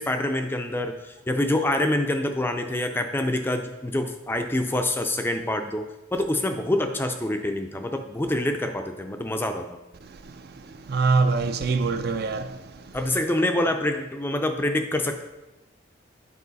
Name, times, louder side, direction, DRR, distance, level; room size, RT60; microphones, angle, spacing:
voice 1, 0.0-9.7 12.9-15.2, left 1 dB, 10° left, 0.4 m, -26 dB
voice 2, 10.9-12.5, right 4 dB, 50° right, 0.4 m, -23 dB
8.4 x 4.8 x 4.0 m
head